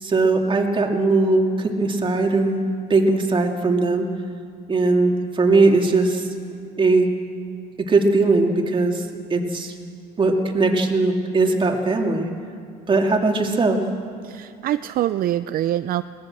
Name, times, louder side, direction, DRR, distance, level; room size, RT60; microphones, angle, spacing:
voice 1, 0.0-2.6 2.9-4.1 4.7-6.3 6.8-7.1 7.8-9.7 10.2-12.3 12.9-13.8, right 3 dB, 30° right, 2 dB, 2.5 m, -19 dB
voice 2, 14.2-16.0, right 12 dB, 60° right, 13 dB, 0.5 m, -24 dB
21.0 x 18.5 x 7.7 m, 2.3 s
cardioid pair, 110°, 17 cm